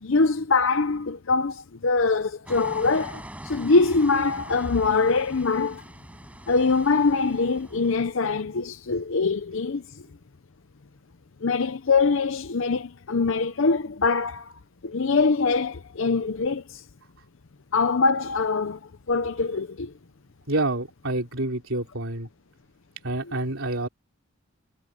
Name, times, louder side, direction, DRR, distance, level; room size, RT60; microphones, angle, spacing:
voice 1, 0.0-5.8 6.5-9.8 11.4-14.5 14.8-16.8 17.7-18.8 19.1-19.9, left 4 dB, 60° left, 0.7 m, -23 dB
sound 1, 2.5-8.1, right 1 dB, 5° right, 5.1 m, -43 dB
voice 2, 20.5-22.3 23.0-23.9, right 2 dB, 65° right, 3.7 m, -28 dB
head